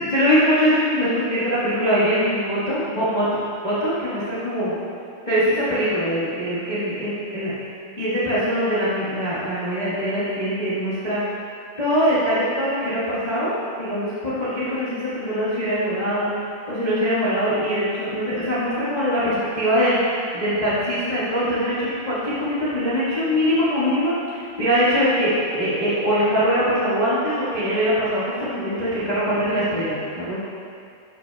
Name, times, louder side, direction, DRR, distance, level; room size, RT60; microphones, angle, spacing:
voice 1, 0.0-3.2 3.6-4.8 5.3-7.5 8.0-11.2 11.8-30.4, equal, 70° left, -11 dB, 0.4 m, -22 dB
11.5 x 5.7 x 2.3 m, 2.4 s
omnidirectional pair, 3.7 m